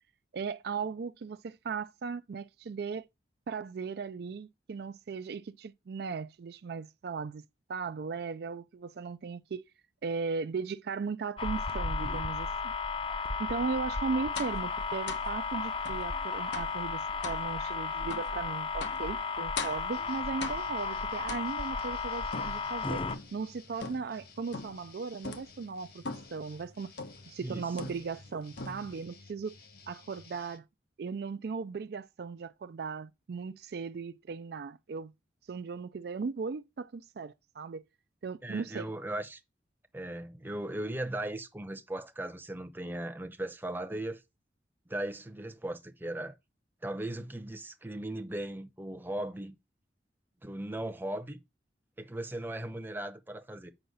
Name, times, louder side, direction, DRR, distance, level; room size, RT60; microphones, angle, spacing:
voice 1, 0.3-3.1 3.5-7.4 7.7-9.6 10.0-12.7 13.4-26.0 26.3-26.9 27.3-29.6 29.9-30.6 31.0-35.1 35.5-37.8 38.2-39.0, right 5 dB, 60° right, 0.4 m, -37 dB
sound 1, 11.4-23.2, left 4 dB, 30° left, 0.6 m, -34 dB
sound 2, 14.3-14.6 15.1-15.3 15.8-16.1 16.5-16.8 17.2-17.4 18.1-18.3 18.8-19.1 19.6-19.9 20.4-20.8 21.3-21.8 22.3-23.4 23.8-24.2 24.5-24.9 25.2-25.5 26.0-26.4 27.0-27.3 27.8-28.3 28.6-29.0, left 4 dB, 80° left, 1.1 m, -40 dB
sound 3, 19.9-30.6, left 4 dB, 55° left, 1.4 m, -56 dB
voice 2, 38.4-39.4 39.9-44.2 44.9-46.4 46.8-49.5 50.4-51.4 52.0-53.7, right 1 dB, 10° right, 0.7 m, -37 dB
7.8 x 5.7 x 4.0 m
head